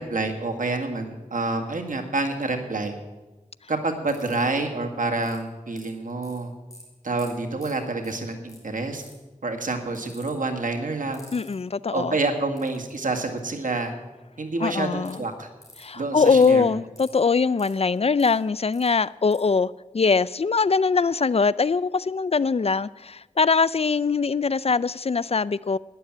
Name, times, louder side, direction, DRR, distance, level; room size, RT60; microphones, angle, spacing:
voice 1, 0.0-2.9 3.7-6.5 7.0-9.0 9.4-11.2 11.9-13.9 14.4-15.5 15.9-16.7, right 3 dB, 80° right, 4 dB, 1.9 m, -28 dB
sound 1, 4.1-4.6 5.2-5.4 5.8-6.4 6.7-6.8 7.2-7.3 7.6-7.7 8.0-8.2 8.5-8.6 8.9-9.2 9.9-10.3 11.1-11.5 12.6-13.0 15.0-15.2 15.6-15.8 16.2-16.5 17.0-17.1 17.6-18.3 18.7-18.9 19.3-19.4, left 1 dB, 25° left, 5.2 m, -48 dB
voice 2, 11.3-12.1 14.6-15.2 15.8-25.8, left 4 dB, 50° left, 18 dB, 0.4 m, -22 dB
12.5 x 10.5 x 8.8 m, 1.1 s
wide cardioid pair, 45°, 14 cm